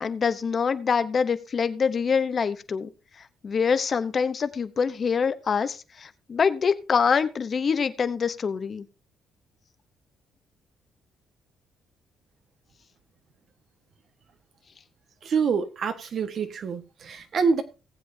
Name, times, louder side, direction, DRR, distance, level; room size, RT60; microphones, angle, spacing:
voice 1, 0.0-2.9 3.2-8.9, left 6 dB, 40° left, 0.8 m, -25 dB
voice 2, 15.2-17.6, right 5 dB, 55° right, 1.4 m, -26 dB
18.5 x 7.7 x 2.7 m
cardioid pair, 100°, 0 cm